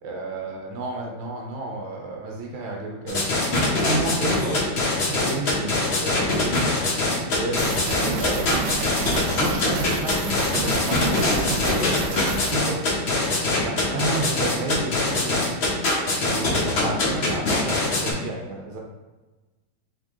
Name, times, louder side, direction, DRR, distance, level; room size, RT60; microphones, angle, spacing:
voice 1, 0.0-3.3 3.7-4.7 5.1-6.7 7.2-8.5 9.3-12.8 13.6-15.5 16.2-18.8, right 2 dB, 90° right, -1 dB, 1.5 m, -31 dB
sound 1, 3.1-18.1, left 2 dB, 50° left, 0.8 m, -23 dB
sound 2, 7.6-12.6, right 3 dB, 70° right, 1.2 m, -30 dB
3.6 x 3.4 x 3.5 m, 1.2 s
omnidirectional pair, 2.2 m